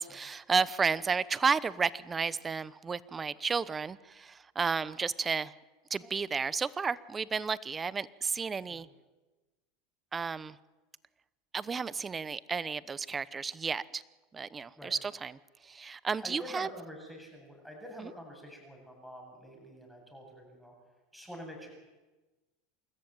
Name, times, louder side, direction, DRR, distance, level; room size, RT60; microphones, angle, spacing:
voice 1, 0.0-5.5 5.9-8.9 10.1-10.6 11.5-14.0 14.3-16.7 18.0-18.1, right 5 dB, 20° right, 18 dB, 1.0 m, -32 dB
voice 2, 16.2-20.7 21.1-21.7, equal, ahead, 0 dB, 7.8 m, -47 dB
28.5 x 14.0 x 9.1 m, 1.2 s
supercardioid pair, 110°, 0 cm